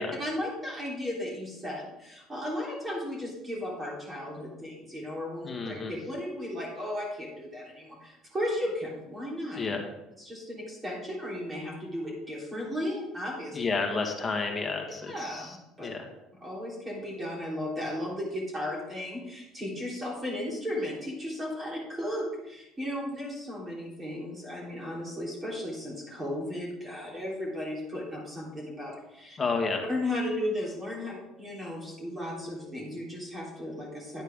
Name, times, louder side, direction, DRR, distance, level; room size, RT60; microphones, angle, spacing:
voice 1, 0.2-9.6 10.2-13.6 15.1-15.9 16.4-29.4 29.9-34.2, left 1 dB, 20° right, -3 dB, 3.5 m, -35 dB
voice 2, 5.4-5.9 9.5-9.8 13.5-16.1 29.4-29.8, left 4 dB, 25° left, 3 dB, 1.7 m, -31 dB
10.5 x 8.9 x 3.7 m, 0.90 s
cardioid pair, 120°, 0 cm